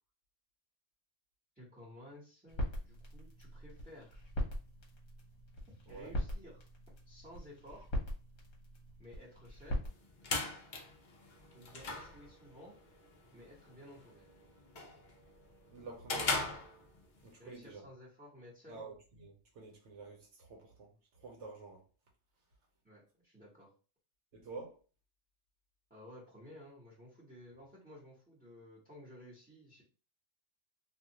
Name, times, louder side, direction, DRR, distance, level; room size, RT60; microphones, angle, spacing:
voice 1, 1.6-4.2 5.9-6.7 7.1-7.9 9.0-9.9 11.5-12.7 13.3-14.3 17.4-18.8 22.8-23.7 25.9-29.8, left 1 dB, 10° right, 1.0 m, -54 dB
sound 1, 2.5-9.9, equal, 65° left, 1.1 m, -41 dB
sound 2, 9.8-17.3, left 3 dB, 50° left, 0.7 m, -41 dB
voice 2, 15.7-16.5 17.2-17.8 18.7-20.9 21.2-21.8 24.3-24.8, right 3 dB, 70° right, 1.0 m, -49 dB
2.6 x 2.4 x 2.8 m
omnidirectional pair, 1.3 m